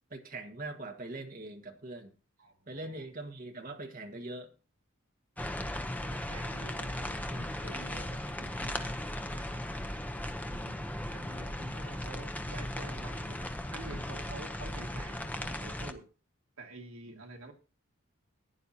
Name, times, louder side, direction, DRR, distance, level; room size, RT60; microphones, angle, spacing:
voice 1, 0.1-2.1 2.7-4.5 10.5-10.9 17.1-17.2, right 2 dB, 40° right, 5 dB, 1.6 m, -42 dB
voice 2, 2.4-3.0 6.0-9.6 11.1-16.0 16.6-17.5, right 2 dB, 75° right, 2 dB, 2.1 m, -49 dB
sound 1, 5.4-15.9, left 1 dB, 5° left, 0.8 m, -37 dB
15.5 x 9.9 x 2.8 m, 0.34 s
head